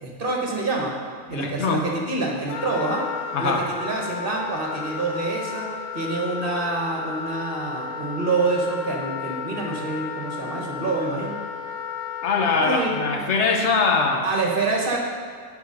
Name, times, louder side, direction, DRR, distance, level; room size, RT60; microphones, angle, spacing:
voice 1, 0.0-0.9 1.3-3.0 3.4-3.5 3.8-5.7 5.9-11.4 12.6-13.2 14.2-15.0, right 3 dB, 45° right, -1 dB, 1.3 m, -26 dB
voice 2, 1.3-1.8 3.3-3.6 12.2-14.3, left 4 dB, 60° left, 2 dB, 1.1 m, -22 dB
Wind instrument woodwind instrument, 2.5-13.2, left 6 dB, 85° left, 1.0 m, -33 dB
8.1 x 5.0 x 5.3 m, 2.1 s
omnidirectional pair, 1.4 m